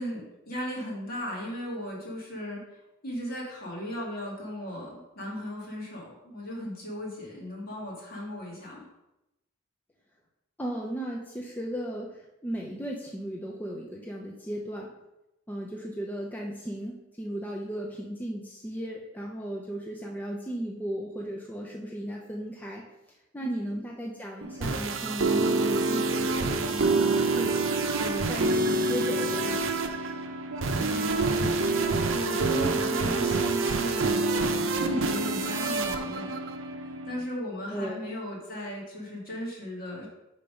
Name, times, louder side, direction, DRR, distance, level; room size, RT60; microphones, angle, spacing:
voice 1, 0.0-2.6 3.0-8.8 23.4-23.7 30.8-36.3 36.8-40.1, equal, 50° left, -4 dB, 2.2 m, -37 dB
voice 2, 10.6-12.1 12.4-14.9 15.5-22.8 23.3-27.7 28.0-29.6 37.7-38.0, right 1 dB, 10° left, -2 dB, 0.5 m, -36 dB
sound 1, 24.4-37.2, right 3 dB, 75° right, 0.6 m, -27 dB
5.3 x 4.4 x 5.3 m, 0.94 s
head